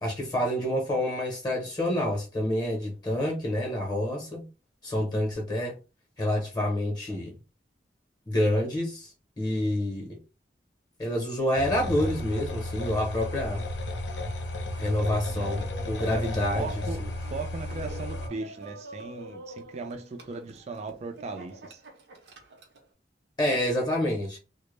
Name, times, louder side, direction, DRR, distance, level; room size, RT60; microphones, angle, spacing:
voice 1, 0.0-4.4 4.8-5.8 6.2-7.3 8.3-9.1 9.4-10.2 11.0-13.7 14.8-16.7 23.4-24.4, left 1 dB, 25° left, 0.7 m, -28 dB
sound 1, 11.5-18.3, left 1 dB, 80° left, 0.6 m, -33 dB
Laughter, 14.8-22.9, right 2 dB, 70° right, 0.7 m, -46 dB
voice 2, 16.1-21.8, right 4 dB, 40° right, 0.3 m, -38 dB
2.1 x 2.0 x 3.0 m
head